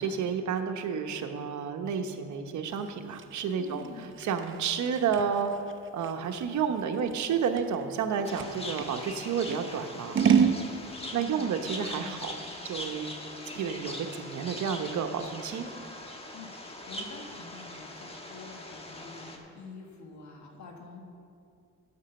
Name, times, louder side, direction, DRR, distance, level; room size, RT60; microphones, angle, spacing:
voice 1, 0.0-5.5 5.9-10.2 11.1-12.3 12.6-13.1 13.5-15.7, right 7 dB, 70° right, 6 dB, 0.9 m, -31 dB
Scissors, 2.8-8.9 9.5-10.6, right 7 dB, 40° right, 0.7 m, -29 dB
voice 2, 3.6-4.1 11.1-11.6 11.9-12.2 16.3-21.1, left 4 dB, 70° left, 2 dB, 1.5 m, -46 dB
sound 1, 8.2-19.4, left 1 dB, 20° left, 1.2 m, -41 dB
9.6 x 6.1 x 7.0 m, 2.4 s
cardioid pair, 90°, 30 cm